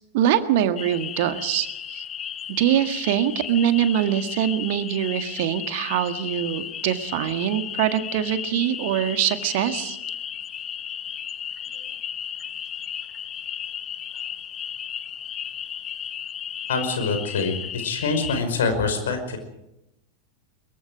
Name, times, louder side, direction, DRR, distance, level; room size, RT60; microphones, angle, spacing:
voice 1, 0.1-2.0 2.6-10.0, right 11 dB, 50° right, 10 dB, 1.8 m, -23 dB
sound 1, 0.8-18.4, left 9 dB, 25° left, 1.1 m, -34 dB
voice 2, 16.7-19.4, left 4 dB, 60° left, 7 dB, 5.2 m, -25 dB
24.0 x 22.5 x 4.9 m, 0.87 s
figure-of-eight pair, 90°, 0 cm